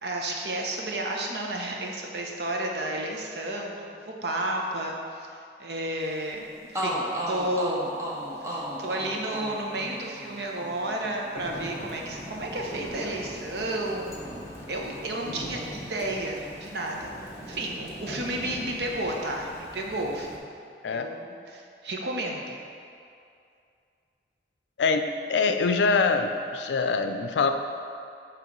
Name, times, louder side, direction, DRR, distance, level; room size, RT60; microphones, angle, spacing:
voice 1, 0.0-5.3 5.6-7.9 8.5-17.1 17.4-20.4 20.9-22.6, right 1 dB, 70° right, 0 dB, 0.8 m, -32 dB
sound 1, 6.3-6.4 6.7-14.6 14.9-16.0, equal, 15° right, 0.7 m, -36 dB
Thunder / Rain, 11.4-20.4, equal, 15° left, 0.8 m, -41 dB
voice 2, 24.8-27.5, left 4 dB, 85° left, 7 dB, 0.4 m, -24 dB
7.6 x 3.1 x 5.3 m, 2.4 s
head